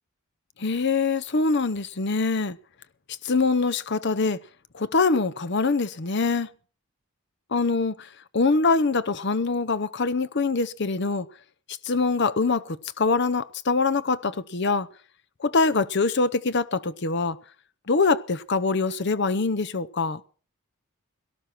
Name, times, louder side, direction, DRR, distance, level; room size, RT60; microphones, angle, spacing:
voice 1, 0.6-2.6 3.2-4.4 4.7-6.5 7.5-11.3 11.8-14.9 15.4-17.4 17.9-20.2, left 4 dB, 50° left, 0.8 m, -24 dB
18.0 x 12.0 x 6.0 m
head